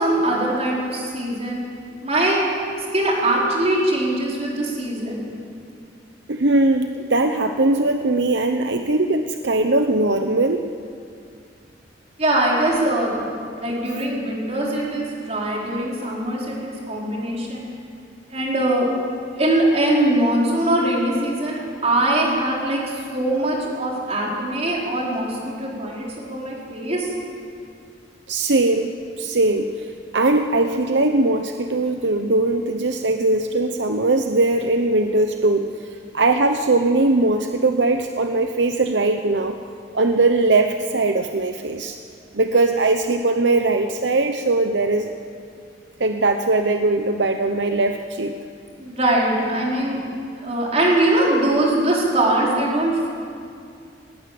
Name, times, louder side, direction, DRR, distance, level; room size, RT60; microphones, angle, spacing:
voice 1, 0.0-1.6 2.0-2.4 2.9-5.3 12.2-13.2 13.5-17.7 18.3-18.9 19.4-27.1 48.7-53.1, right 1 dB, 35° right, -3 dB, 4.9 m, -22 dB
voice 2, 6.3-10.7 28.3-29.9 30.1-35.7 36.1-39.6 39.9-42.0 42.3-45.1 46.0-48.3, right 2 dB, 75° right, 6 dB, 0.9 m, -20 dB
18.5 x 18.5 x 7.8 m, 2.4 s
head